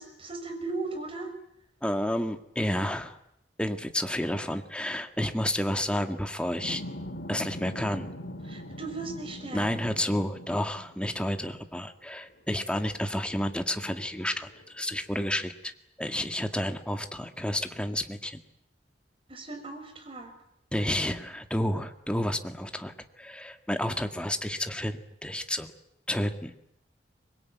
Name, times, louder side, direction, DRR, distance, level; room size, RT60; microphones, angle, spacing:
voice 1, 0.0-1.3 8.5-9.9 19.3-20.3, right 3 dB, 30° right, 5 dB, 6.2 m, -37 dB
voice 2, 1.8-3.2 3.6-6.8 7.3-8.1 9.5-15.7 16.0-18.4 20.7-25.7 26.1-26.5, left 1 dB, 5° left, 6 dB, 1.9 m, -30 dB
sound 1, 6.6-11.1 12.4-12.5 12.9-15.0, equal, 70° left, 3.3 m, -42 dB
24.5 x 22.0 x 9.5 m, 0.77 s
head